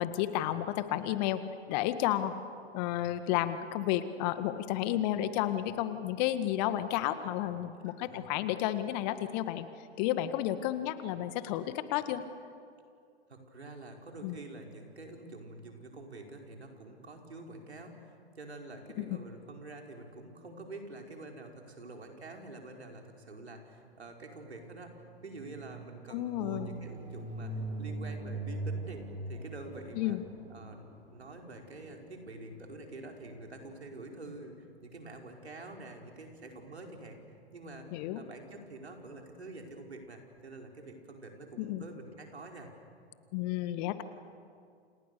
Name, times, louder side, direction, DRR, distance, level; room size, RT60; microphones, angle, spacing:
voice 1, 0.0-1.4 1.7-2.3 2.7-9.7 10.0-12.2 14.2-14.4 19.0-19.1 26.1-26.8 30.0-30.2 37.9-38.2 41.6-41.8 43.3-44.0, left 13 dB, 40° left, 11 dB, 1.8 m, -32 dB
voice 2, 7.8-8.2 13.3-30.2 30.5-37.2 37.5-37.9 38.1-42.7, right 2 dB, 80° right, 2 dB, 5.0 m, -47 dB
sound 1, 23.9-33.9, right 2 dB, 25° right, 5.1 m, -42 dB
29.5 x 29.0 x 6.9 m, 2.3 s
figure-of-eight pair, 105°, 32 cm